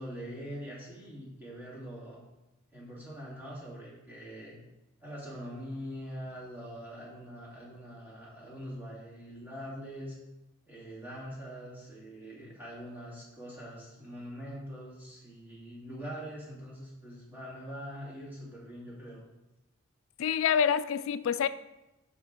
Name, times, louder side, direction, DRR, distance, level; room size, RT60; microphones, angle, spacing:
voice 1, 0.0-2.2 2.7-4.6 5.0-10.2 10.7-19.2, equal, 10° right, -6 dB, 2.3 m, -43 dB
voice 2, 20.2-21.5, left 8 dB, 65° left, 14 dB, 0.3 m, -27 dB
7.0 x 5.8 x 3.6 m, 0.98 s
head